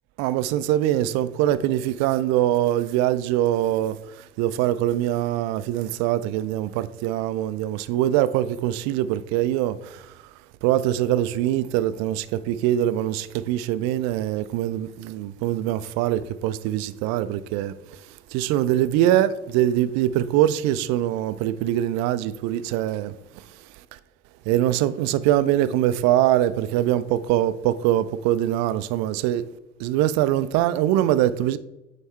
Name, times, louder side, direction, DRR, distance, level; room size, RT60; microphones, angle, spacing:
voice 1, 0.2-10.1 10.6-17.7 18.3-23.1 24.5-29.4 29.8-31.6, right 12 dB, 60° right, 0.5 m, -23 dB
8.8 x 3.3 x 4.3 m
figure-of-eight pair, 45°, 32 cm